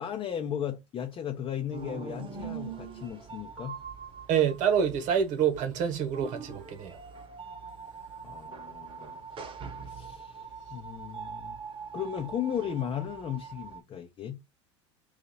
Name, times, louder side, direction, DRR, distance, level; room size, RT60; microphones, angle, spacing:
voice 1, 0.0-3.8 8.2-9.3 9.8-11.6 11.9-14.4, left 9 dB, 35° left, 0.7 m, -36 dB
sound 1, 1.7-13.8, right 5 dB, 35° right, 0.9 m, -43 dB
voice 2, 4.3-7.0, right 8 dB, 55° right, 1.1 m, -27 dB
2.7 x 2.4 x 4.1 m
hypercardioid pair, 85°, 16 cm